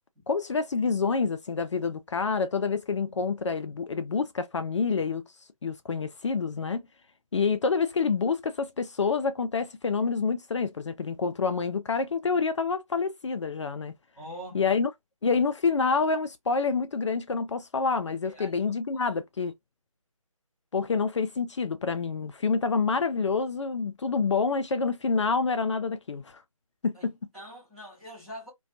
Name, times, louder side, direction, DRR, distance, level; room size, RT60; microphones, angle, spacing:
voice 1, 0.3-5.2 5.6-6.8 7.3-13.9 14.5-14.9 15.2-19.5 20.7-26.4 26.8-27.2, left 5 dB, 55° left, 0.4 m, -27 dB
voice 2, 14.2-14.6 18.2-18.7 26.9-28.5, equal, 5° right, 0.6 m, -44 dB
2.4 x 2.2 x 2.5 m
figure-of-eight pair, 160°, 18 cm